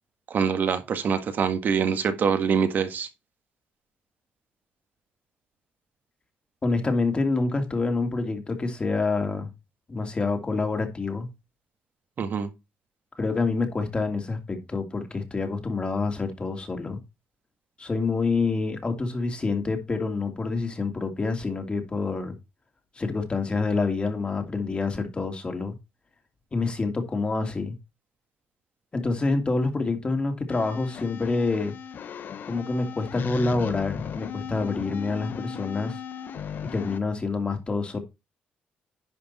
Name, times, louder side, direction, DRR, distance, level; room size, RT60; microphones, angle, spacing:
voice 1, 0.3-3.1 12.2-12.5, right 6 dB, 55° right, 1.7 m, -24 dB
voice 2, 6.6-9.5 9.9-11.3 13.2-17.0 17.8-22.3 23.0-25.7 26.5-27.8 28.9-31.7 32.5-36.0 36.6-38.0, left 3 dB, 30° left, 2.7 m, -27 dB
sound 1, 30.5-37.0, left 7 dB, 60° left, 0.9 m, -37 dB
10.5 x 5.3 x 4.2 m
cardioid pair, 80°, 4 cm